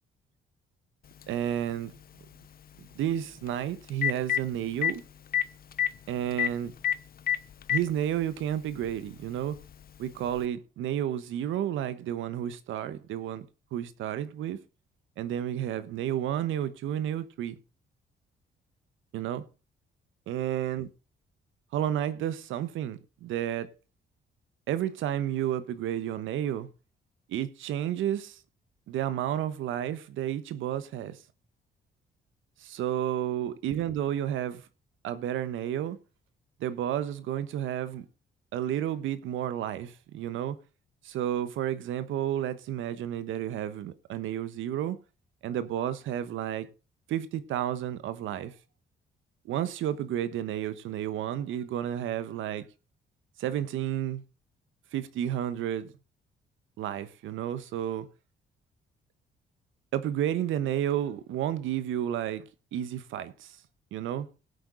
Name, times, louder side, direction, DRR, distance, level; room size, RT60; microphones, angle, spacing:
Telephone, 1.2-1.3 3.5-3.6 3.9-4.4 4.8-4.9 5.3-5.4 5.7-5.9 6.4-6.5 6.8-7.0 7.3-7.8 8.8-8.9 10.4-10.5, left 10 dB, 50° left, 0.7 m, -25 dB
voice 1, 1.3-1.9 2.9-5.0 6.1-6.7 7.7-9.6 10.0-13.5 13.7-14.6 15.2-17.6 19.1-19.4 20.3-20.9 21.7-23.7 24.7-26.7 27.3-28.4 28.9-31.2 32.6-34.7 35.0-36.0 36.6-38.0 38.5-40.6 41.0-45.0 45.4-46.7 47.1-48.5 49.4-52.6 53.4-54.2 54.9-55.9 56.8-58.1 59.9-63.6 63.9-64.3, right 11 dB, 85° right, 1.1 m, -31 dB
17.5 x 8.1 x 3.9 m
cardioid pair, 90°, 20 cm